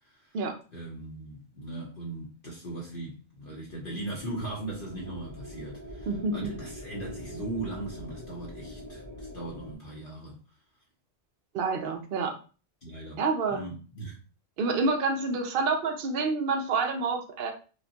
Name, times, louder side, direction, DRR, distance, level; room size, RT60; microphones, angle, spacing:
voice 1, 0.1-0.4 0.7-6.1 6.3-10.4 12.8-13.2 13.5-14.2, right 2 dB, 50° left, 0.9 m, -39 dB
sound 1, 3.6-9.7, equal, 20° right, 0.6 m, -43 dB
voice 2, 6.1-6.5 11.5-12.3 13.2-13.6 14.6-17.5, right 4 dB, 55° right, 0.7 m, -28 dB
5.0 x 2.2 x 2.8 m
omnidirectional pair, 1.2 m